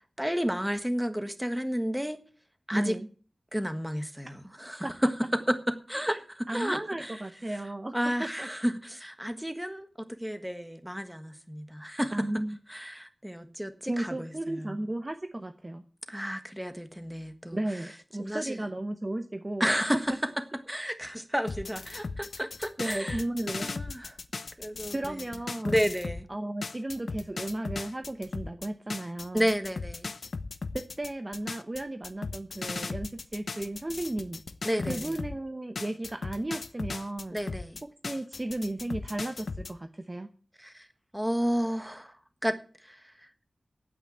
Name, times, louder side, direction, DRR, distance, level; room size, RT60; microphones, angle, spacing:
voice 1, 0.2-2.2 2.7-3.0 3.5-7.2 7.5-7.6 7.9-12.3 12.7-14.8 16.1-17.6 18.2-18.6 19.6-20.2 20.7-23.2 23.6-24.2 24.6-25.2 25.6-26.3 29.3-30.1 34.6-35.2 37.3-37.8 40.6-40.9 41.1-42.2 42.4-43.3, equal, 5° right, 9 dB, 1.4 m, -31 dB
voice 2, 2.7-3.1 4.8-4.9 6.1-6.2 6.5-7.9 8.2-8.5 12.1-12.6 13.8-15.8 17.5-19.7 20.1-20.2 22.8-23.7 24.9-25.8 26.3-29.5 30.7-34.4 34.9-37.4 38.0-40.3, right 1 dB, 25° right, 7 dB, 0.8 m, -34 dB
sound 1, 21.5-26.2 26.6-35.4 35.8-39.7, left 4 dB, 65° left, 0.8 m, -37 dB
9.1 x 8.8 x 8.6 m, 0.41 s
wide cardioid pair, 100°, 0 cm